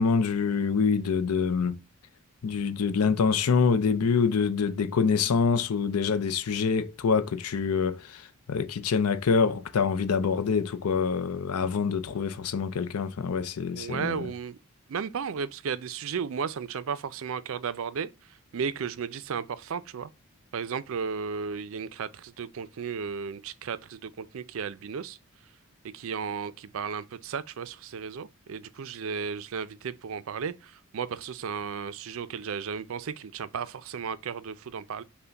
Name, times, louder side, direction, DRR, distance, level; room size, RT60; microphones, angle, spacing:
voice 1, 0.0-1.8 2.4-14.3, left 5 dB, 90° left, 0.5 m, -26 dB
voice 2, 13.7-14.6 14.9-20.1 20.5-25.2 25.9-35.0, right 6 dB, 65° right, 0.4 m, -34 dB
5.6 x 2.2 x 3.9 m
head